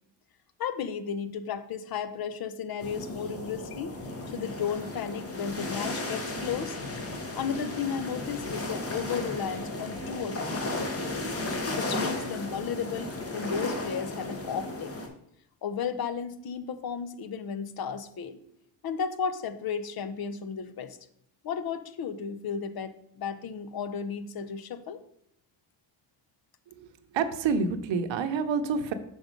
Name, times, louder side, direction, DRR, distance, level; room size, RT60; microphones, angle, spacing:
voice 1, 0.6-3.9 4.3-6.8 7.4-11.3 11.8-14.9 15.6-18.4 18.8-21.0 21.4-25.0, left 7 dB, 50° left, 12 dB, 0.7 m, -34 dB
sound 1, 2.8-15.1, left 2 dB, 30° left, 1.2 m, -34 dB
voice 2, 27.1-28.9, right 5 dB, 70° right, 8 dB, 0.8 m, -27 dB
6.1 x 3.9 x 5.1 m, 0.75 s
cardioid pair, 100°, 46 cm